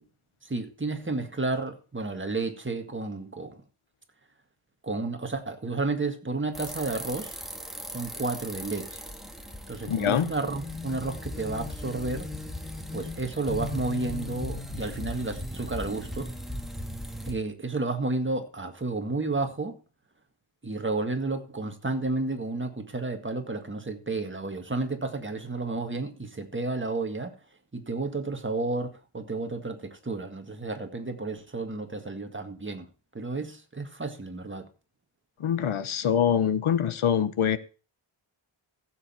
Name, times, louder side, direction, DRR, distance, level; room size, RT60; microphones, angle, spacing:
voice 1, 0.4-3.6 4.8-7.4 7.9-9.0 9.7-12.3 12.9-16.3 17.3-19.7 20.6-27.3 27.7-32.9 33.1-34.7, right 3 dB, 25° right, 1.9 m, -31 dB
sound 1, 6.5-17.3, left 1 dB, ahead, 1.9 m, -38 dB
voice 2, 9.9-10.3 35.4-37.6, left 8 dB, 75° left, 1.0 m, -24 dB
15.0 x 7.8 x 4.4 m
wide cardioid pair, 105°, 49 cm